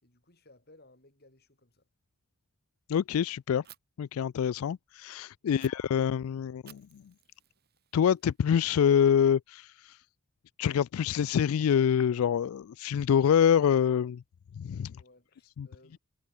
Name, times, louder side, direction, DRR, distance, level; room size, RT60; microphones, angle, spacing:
voice 1, 0.0-1.9 14.9-16.0, left 2 dB, 50° left, 4.8 m, -60 dB
voice 2, 2.9-3.6 4.0-7.0 7.9-10.0 10.6-14.2 14.5-15.0 15.6-15.7, left 8 dB, 85° left, 0.3 m, -26 dB
Fire, 3.6-3.8 5.6-5.7 6.7-8.6, right 12 dB, 50° right, 2.7 m, -56 dB
head